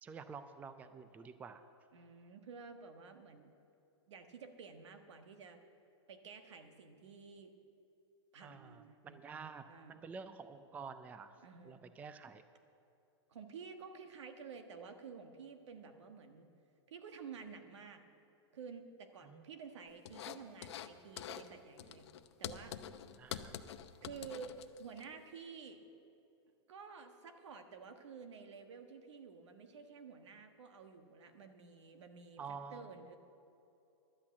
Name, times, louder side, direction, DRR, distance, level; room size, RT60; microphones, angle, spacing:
voice 1, 0.0-1.6 8.4-11.3 11.6-12.4 19.2-19.5 23.2-23.6 32.4-32.8, right 5 dB, 10° right, 11 dB, 0.4 m, -49 dB
voice 2, 1.9-3.5 4.1-5.6 6.1-7.5 8.3-9.2 9.7-10.0 11.4-11.8 13.3-16.5 16.9-18.0 18.5-22.1 22.4-22.8 24.0-25.8 26.7-33.2, right 5 dB, 80° right, 6 dB, 1.4 m, -51 dB
sound 1, 20.1-20.9 21.2-21.5 21.8-25.0, left 10 dB, 70° left, 0.7 m, -46 dB
12.0 x 8.5 x 8.5 m, 2.8 s
hypercardioid pair, 140°, 15 cm